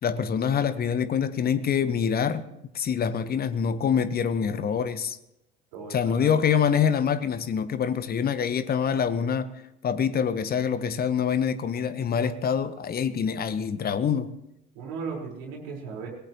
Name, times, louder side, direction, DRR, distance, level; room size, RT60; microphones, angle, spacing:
voice 1, 0.0-2.5 2.7-5.2 5.9-9.5 9.8-14.3, left 7 dB, 30° left, 13 dB, 1.2 m, -25 dB
voice 2, 5.7-6.3 14.7-16.1, right 5 dB, 55° right, -1 dB, 4.8 m, -36 dB
25.5 x 18.0 x 3.1 m, 0.85 s
figure-of-eight pair, 65°, 31 cm